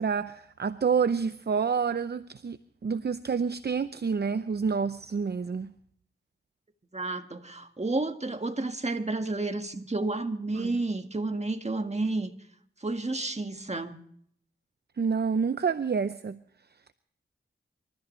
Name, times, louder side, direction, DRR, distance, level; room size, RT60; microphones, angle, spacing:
voice 1, 0.0-5.7 10.5-10.8 15.0-16.4, right 6 dB, 50° right, 13 dB, 0.6 m, -28 dB
voice 2, 6.9-12.3 12.8-14.0, right 2 dB, 30° right, 6 dB, 1.7 m, -31 dB
27.0 x 14.0 x 3.2 m, 0.65 s
cardioid pair, 55°, 21 cm